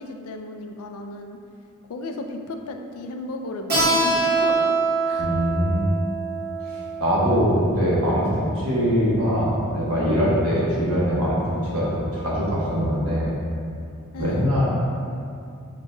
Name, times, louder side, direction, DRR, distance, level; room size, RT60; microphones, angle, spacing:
voice 1, 0.0-1.4 1.9-4.8 5.1-5.3 14.1-14.5, left 2 dB, 75° left, 4 dB, 0.4 m, -34 dB
Keyboard (musical), 3.7-9.0, right 3 dB, 45° right, 1.2 m, -25 dB
voice 2, 5.2-5.8 6.7-8.3 8.5-11.4 11.7-13.3 14.2-14.7, equal, 75° right, -7 dB, 1.2 m, -22 dB
5.0 x 4.0 x 2.3 m, 2.5 s
head